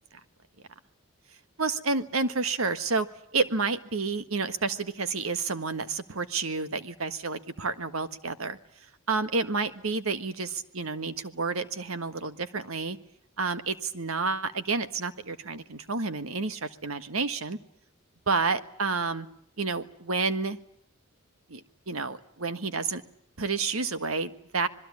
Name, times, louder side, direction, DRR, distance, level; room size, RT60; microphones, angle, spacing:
voice 1, 1.6-3.1 3.3-8.6 9.1-13.0 13.4-17.6 18.3-19.3 19.6-20.6 21.5-21.6 21.9-23.0 23.4-24.7, right 4 dB, 80° right, 11 dB, 1.6 m, -30 dB
26.5 x 21.0 x 8.6 m, 0.68 s
head